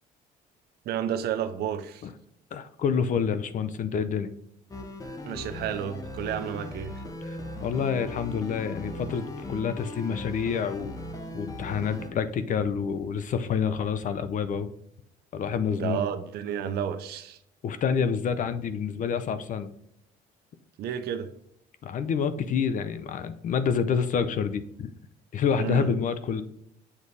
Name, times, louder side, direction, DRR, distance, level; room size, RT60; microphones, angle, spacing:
voice 1, 0.9-2.0 5.2-7.0 15.8-17.4 20.8-21.3 25.6-25.9, right 9 dB, 70° right, 0.7 m, -31 dB
voice 2, 2.5-4.3 7.3-10.9 11.3-14.7 15.3-16.0 17.6-19.7 21.8-24.9 25.3-26.4, left 6 dB, 50° left, 0.6 m, -28 dB
sound 1, 4.7-12.1, left 1 dB, 20° left, 1.1 m, -38 dB
7.4 x 4.0 x 3.3 m
cardioid pair, 110°, 17 cm